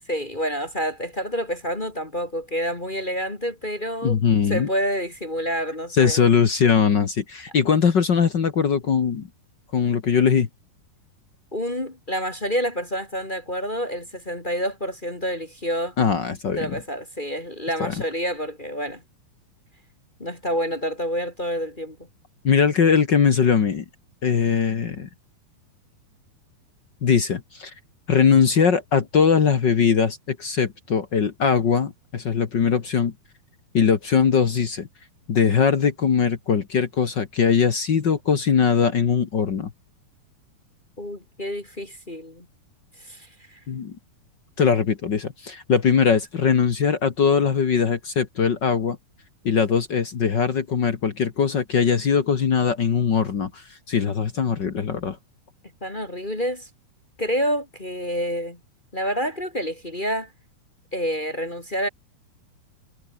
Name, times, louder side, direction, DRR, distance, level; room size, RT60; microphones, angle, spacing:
voice 1, 0.1-4.2 4.5-6.2 11.5-15.9 16.6-19.0 20.2-22.0 41.0-42.4 43.0-43.6 55.8-56.7 57.2-58.6 58.9-60.3 60.9-61.9, equal, 20° left, 1.4 m, -28 dB
voice 2, 4.0-4.7 5.9-9.3 9.7-10.5 16.0-16.8 17.8-17.9 22.4-23.8 24.2-25.1 27.0-27.7 28.1-33.1 33.7-34.9 35.3-39.7 43.7-44.0 44.6-49.0 49.4-55.2, left 6 dB, 55° left, 1.2 m, -21 dB
omnidirectional pair, 4.5 m